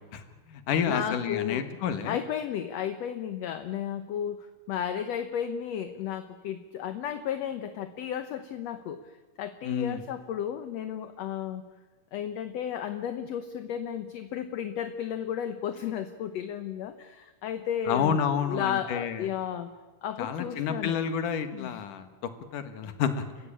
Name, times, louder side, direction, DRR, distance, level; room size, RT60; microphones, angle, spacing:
voice 1, 0.1-2.2 9.6-10.0 17.9-19.3 20.2-22.1 22.5-23.2, left 7 dB, 85° left, 9 dB, 3.2 m, -29 dB
voice 2, 0.9-1.6 2.0-9.0 9.4-11.6 12.1-19.7 20.0-21.0 21.5-21.8, left 9 dB, 65° left, 9 dB, 2.0 m, -33 dB
30.0 x 15.5 x 8.6 m, 1.2 s
omnidirectional pair, 3.6 m